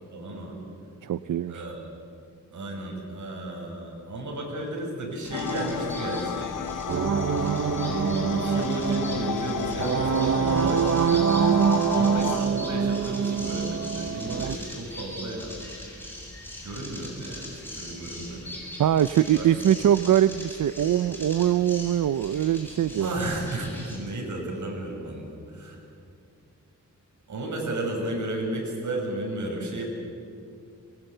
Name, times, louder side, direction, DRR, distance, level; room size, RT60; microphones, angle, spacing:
voice 1, 0.1-0.6 1.5-1.8 2.5-6.5 7.8-15.5 16.6-18.5 19.4-19.7 23.0-25.8 27.3-29.9, right 1 dB, 70° right, 0 dB, 7.0 m, -33 dB
voice 2, 1.0-1.6 18.8-23.1, right 11 dB, 85° right, 14 dB, 0.7 m, -22 dB
sound 1, 5.2-24.0, left 1 dB, 5° left, 7.8 m, -41 dB
sound 2, 5.3-12.4, left 9 dB, 90° left, 1.0 m, -32 dB
sound 3, 6.9-14.6, right 7 dB, 55° right, 1.0 m, -25 dB
24.5 x 22.0 x 9.2 m, 2.5 s
wide cardioid pair, 115°, 31 cm